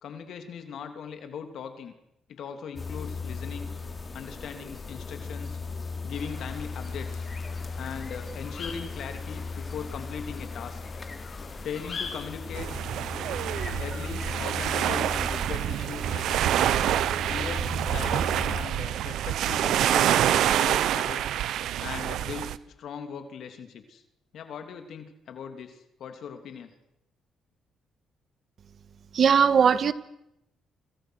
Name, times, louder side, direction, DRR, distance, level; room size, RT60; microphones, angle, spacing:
voice 1, 0.0-1.9 2.3-3.7 4.1-5.6 6.0-7.3 7.8-10.8 11.6-12.7 13.8-16.4 17.3-21.3 21.8-24.0 24.3-26.7, left 7 dB, 70° left, 7 dB, 3.0 m, -39 dB
sound 1, 2.8-18.7, left 4 dB, 30° left, 3.6 m, -37 dB
sound 2, 6.1-12.8, left 5 dB, 50° left, 6.0 m, -44 dB
sound 3, 12.5-22.6, right 11 dB, 80° right, 1.0 m, -26 dB
voice 2, 29.1-29.9, right 7 dB, 55° right, 14 dB, 1.6 m, -19 dB
29.0 x 26.5 x 6.5 m, 0.85 s
cardioid pair, 90°, 0 cm